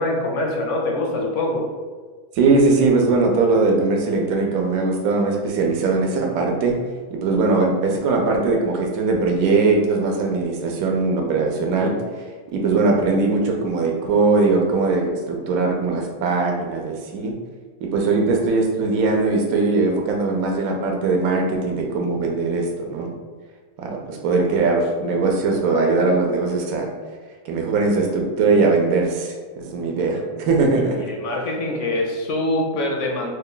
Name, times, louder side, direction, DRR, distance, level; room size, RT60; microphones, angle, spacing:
voice 1, 0.0-1.7 30.7-33.3, left 1 dB, 70° left, 0 dB, 0.8 m, -24 dB
voice 2, 2.4-6.8 7.1-11.9 12.5-17.3 17.8-23.1 23.8-26.9 27.4-31.0, right 3 dB, 85° right, 1 dB, 1.0 m, -20 dB
3.2 x 2.2 x 3.7 m, 1.5 s
omnidirectional pair, 1.5 m